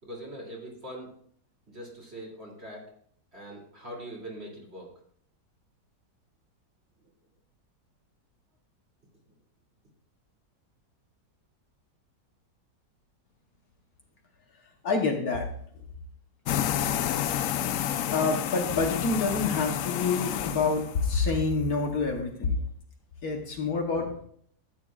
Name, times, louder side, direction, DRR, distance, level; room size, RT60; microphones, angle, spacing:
voice 1, 0.0-1.1 1.7-2.8 3.3-4.9, right 1 dB, 35° right, -3 dB, 3.1 m, -42 dB
voice 2, 14.8-15.5 18.1-22.6 23.2-24.2, left 4 dB, 60° left, 3 dB, 1.5 m, -27 dB
sound 1, 16.5-21.3, left 10 dB, 80° left, 0.7 m, -30 dB
12.5 x 9.1 x 2.4 m, 0.62 s
omnidirectional pair, 1.9 m